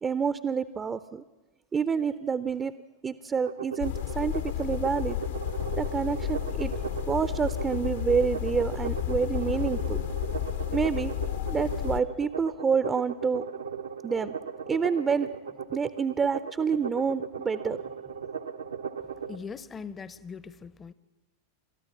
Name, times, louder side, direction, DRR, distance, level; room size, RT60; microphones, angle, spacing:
voice 1, 0.0-1.2 1.7-2.7 3.0-5.2 5.8-6.7 7.1-10.0 10.7-11.1 11.5-13.4 14.0-14.3 14.7-15.3 15.7-17.8, right 6 dB, 20° right, 0.6 m, -28 dB
sound 1, 3.4-19.4, right 7 dB, 70° right, 0.9 m, -37 dB
sound 2, 3.8-12.0, left 12 dB, 60° left, 1.0 m, -32 dB
voice 2, 19.3-20.9, left 5 dB, 20° left, 0.8 m, -40 dB
28.5 x 13.5 x 7.2 m
figure-of-eight pair, 90°, 0 cm